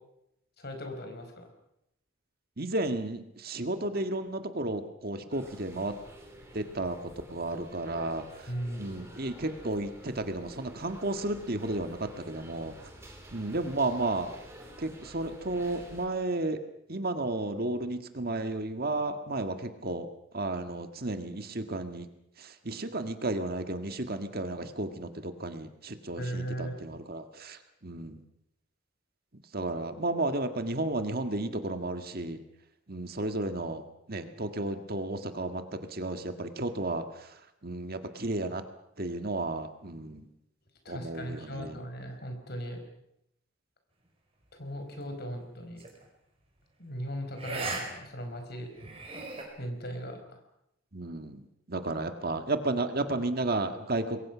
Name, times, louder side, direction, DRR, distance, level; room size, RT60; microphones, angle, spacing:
voice 1, 0.6-1.5 8.5-8.9 26.2-26.8 40.8-42.8 44.5-45.8 46.8-48.7 49.6-50.4, equal, 50° left, 5 dB, 5.0 m, -38 dB
voice 2, 2.6-5.9 6.5-8.5 8.8-12.7 13.3-14.4 14.8-16.6 16.9-20.1 20.3-22.1 22.4-28.2 29.5-32.4 32.9-38.6 39.0-40.3 40.9-41.8 50.9-54.2, right 2 dB, 50° right, 7 dB, 1.7 m, -33 dB
sound 1, 5.3-16.1, right 1 dB, 15° right, 4.3 m, -50 dB
sound 2, 45.8-46.0 47.4-47.8 48.2-48.3 48.8-49.4, right 3 dB, 30° right, 5.0 m, -36 dB
27.0 x 22.0 x 6.2 m, 0.81 s
head